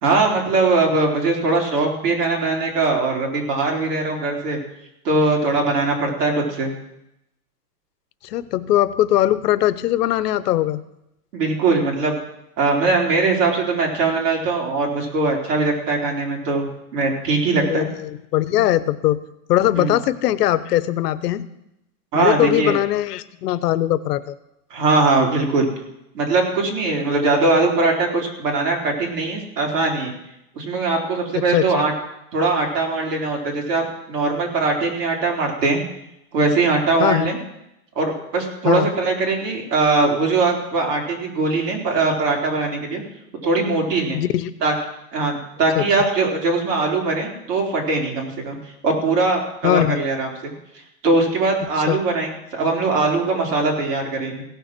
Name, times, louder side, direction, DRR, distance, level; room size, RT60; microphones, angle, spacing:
voice 1, 0.0-4.6 5.0-6.7 11.3-12.2 12.6-17.9 19.8-19.9 22.1-22.8 24.7-25.7 26.1-30.1 30.6-31.9 32.3-35.8 36.3-37.4 38.0-43.0 43.4-44.2 44.6-44.7 45.1-48.6 48.8-50.5 51.0-54.4, right 3 dB, 90° right, -1 dB, 4.0 m, -21 dB
voice 2, 8.2-10.8 17.6-19.2 19.5-21.5 22.1-24.4 27.5-27.6 31.3-31.7 37.0-37.3 38.6-38.9 44.1-44.5 45.7-45.8 49.6-50.0 51.9-52.0, left 13 dB, 80° left, 15 dB, 0.9 m, -20 dB
16.5 x 6.9 x 6.1 m, 0.84 s
supercardioid pair, 175°, 46 cm